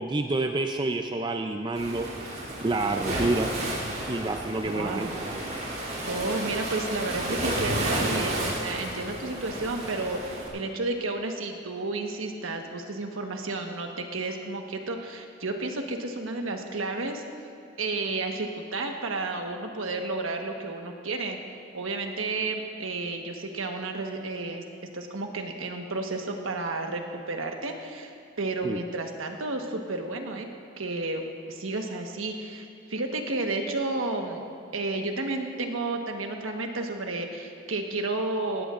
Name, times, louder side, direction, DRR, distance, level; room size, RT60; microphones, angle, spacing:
voice 1, 0.0-2.1 2.6-3.5 4.1-5.1 28.6-28.8, right 2 dB, 20° right, 5 dB, 0.4 m, -28 dB
Waves surf, 1.7-10.5, right 1 dB, 45° right, 3.0 m, -32 dB
voice 2, 4.7-5.1 6.1-17.2 17.8-21.4 21.7-24.6 24.9-28.1 28.4-30.5 30.8-31.2 31.5-34.5 34.7-38.7, right 2 dB, 90° right, 3 dB, 1.3 m, -32 dB
19.0 x 16.0 x 2.5 m, 2.8 s
head